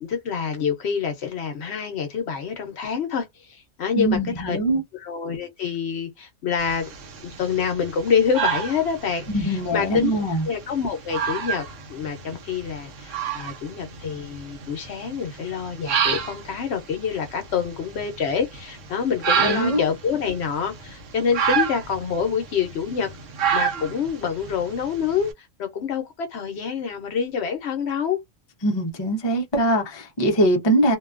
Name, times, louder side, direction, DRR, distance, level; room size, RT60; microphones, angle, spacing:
voice 1, 0.0-4.6 4.9-6.9 7.2-10.1 10.4-23.1 23.5-28.2, left 6 dB, 65° left, 0.9 m, -26 dB
voice 2, 4.0-4.8 9.3-10.4 19.4-19.8 28.6-31.0, right 1 dB, 30° left, 0.6 m, -22 dB
sound 1, 6.6-25.3, right 7 dB, 80° right, 1.1 m, -30 dB
2.6 x 2.2 x 2.4 m
omnidirectional pair, 1.3 m